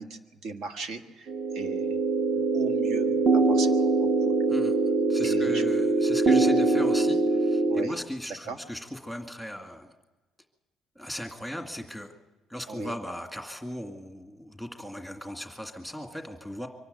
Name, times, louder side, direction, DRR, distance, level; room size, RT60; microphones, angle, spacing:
voice 1, 0.0-2.0 2.3-4.4 5.2-5.6 7.7-8.0 8.5-8.6 12.7-13.0, right 3 dB, 65° right, 7 dB, 1.7 m, -38 dB
sound 1, 1.3-7.9, right 3 dB, 40° right, 1.3 m, -23 dB
voice 2, 5.1-9.9 11.0-12.1 12.5-16.7, equal, 5° right, 4 dB, 2.1 m, -37 dB
24.0 x 12.5 x 9.3 m, 1.2 s
cardioid pair, 160°, 0 cm